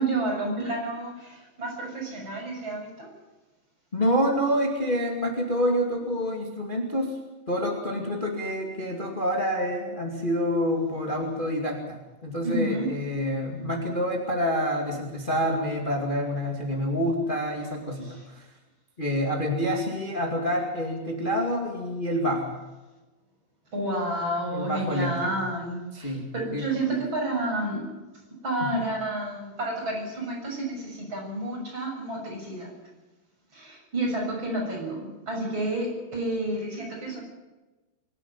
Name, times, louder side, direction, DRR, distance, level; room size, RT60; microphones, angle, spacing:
voice 1, 0.0-3.1 12.4-12.9 18.0-18.2 23.7-27.9 28.4-32.7 33.5-37.2, right 1 dB, 25° right, -1 dB, 7.2 m, -30 dB
voice 2, 3.9-7.2 7.5-18.5 19.0-22.5 24.5-25.3 25.9-26.2 26.5-27.0 28.6-28.8, equal, 35° left, 1 dB, 0.8 m, -27 dB
24.0 x 11.5 x 9.7 m, 1.1 s
omnidirectional pair, 5.4 m